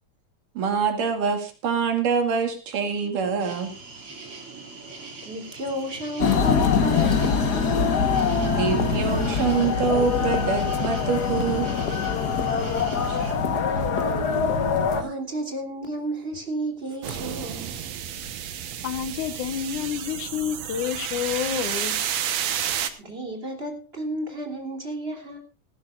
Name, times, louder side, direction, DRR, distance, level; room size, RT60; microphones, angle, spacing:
voice 1, 0.6-3.7 8.5-11.7 13.1-13.2, right 5 dB, 85° right, 3.8 m, -25 dB
sound 1, 3.4-13.3, right 3 dB, 45° right, 3.5 m, -42 dB
voice 2, 5.2-8.1 8.8-9.1 9.5-9.6 13.7-13.8 14.9-17.7 23.0-25.4, right 1 dB, 20° right, 3.2 m, -32 dB
sound 2, 6.2-15.0, left 5 dB, 55° left, 1.1 m, -23 dB
sound 3, 17.0-22.9, right 9 dB, 65° right, 2.2 m, -31 dB
voice 3, 18.8-22.0, left 9 dB, 75° left, 2.6 m, -29 dB
18.5 x 15.0 x 2.5 m
omnidirectional pair, 3.6 m